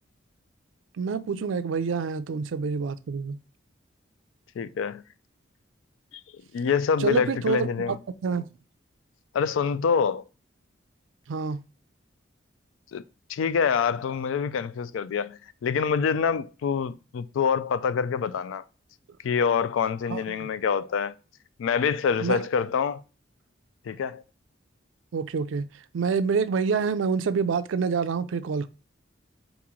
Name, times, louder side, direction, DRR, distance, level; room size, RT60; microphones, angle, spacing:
voice 1, 1.0-3.4 7.0-8.0 8.2-8.5 11.3-11.6 20.1-20.5 22.2-22.5 25.1-25.7 25.9-28.7, right 5 dB, 85° right, 0.4 m, -27 dB
voice 2, 4.6-5.0 6.3-8.0 9.3-10.2 12.9-13.0 13.3-18.6 19.2-21.2 21.6-23.0 23.9-24.2, left 6 dB, 85° left, 0.3 m, -26 dB
4.1 x 3.0 x 3.6 m
head